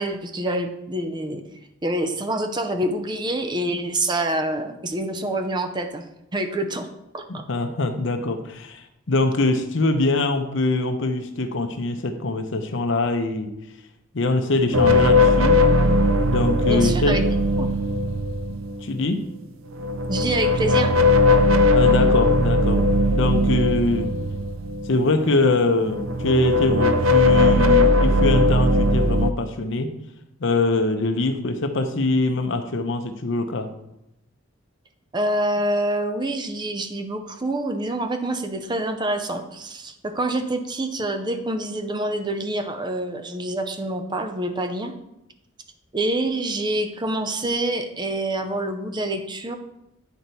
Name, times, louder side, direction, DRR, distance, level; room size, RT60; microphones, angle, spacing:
voice 1, 0.0-1.4 1.8-6.0 6.3-6.9 7.1-7.2 16.7-17.2 17.6-17.7 20.1-21.0 35.1-44.9 45.9-49.6, right 1 dB, 20° right, 7 dB, 0.5 m, -26 dB
voice 2, 7.3-13.5 14.1-15.6 16.3-17.2 18.8-19.2 21.7-24.1 24.8-29.9 30.4-33.7, left 2 dB, 65° left, 7 dB, 0.7 m, -23 dB
sound 1, 14.7-18.9 19.7-25.5 25.8-29.3, left 2 dB, 80° right, 0.5 m, -19 dB
9.5 x 4.5 x 4.1 m, 0.85 s
head